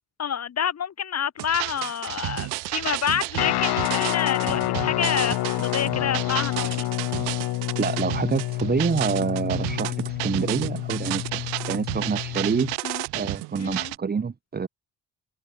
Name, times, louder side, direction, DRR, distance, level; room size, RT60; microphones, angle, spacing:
voice 1, 0.2-6.9 12.8-13.0 13.6-13.9, left 8 dB, 40° left, 1.0 m, -28 dB
sound 1, 1.4-14.0, right 24 dB, 85° right, 0.7 m, -32 dB
Guitar, 3.4-12.8, left 17 dB, 70° left, 0.8 m, -28 dB
voice 2, 7.8-12.7 13.1-14.7, right 5 dB, 25° right, 0.9 m, -27 dB
supercardioid pair, 60°, 39 cm